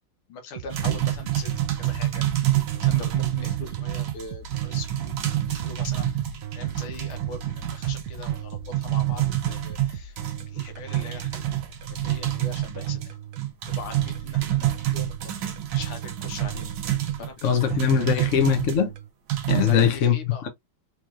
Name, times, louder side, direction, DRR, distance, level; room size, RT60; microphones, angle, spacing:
voice 1, 0.3-1.5 1.8-5.2 5.5-10.2 10.5-11.4 11.9-13.2 13.8-17.8 18.2-18.3 19.6-20.5, left 4 dB, 85° left, 1.9 m, -41 dB
sound 1, 0.5-19.1, right 9 dB, 90° right, 0.7 m, -39 dB
sound 2, 0.7-18.8 19.3-19.9, right 13 dB, 75° right, 1.6 m, -27 dB
voice 2, 17.4-18.9 19.5-20.5, left 9 dB, 55° left, 0.9 m, -22 dB
4.5 x 3.0 x 2.4 m
omnidirectional pair, 2.2 m